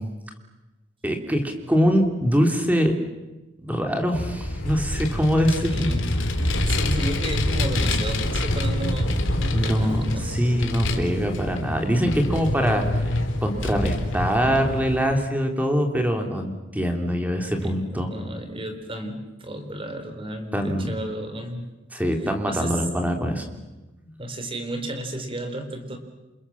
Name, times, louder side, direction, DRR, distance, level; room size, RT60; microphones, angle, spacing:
voice 1, 1.0-2.9 3.6-5.9 9.5-12.8 13.4-18.1 20.5-20.9 21.9-23.4 24.0-24.1, equal, 10° right, 4 dB, 3.4 m, -23 dB
Vehicle, 4.1-15.0, left 1 dB, 75° left, 3.4 m, -26 dB
voice 2, 5.6-6.1 6.6-10.5 17.6-21.7 22.4-22.8 24.2-26.0, right 1 dB, 30° right, 6 dB, 4.1 m, -33 dB
28.5 x 27.5 x 7.3 m, 1.1 s
head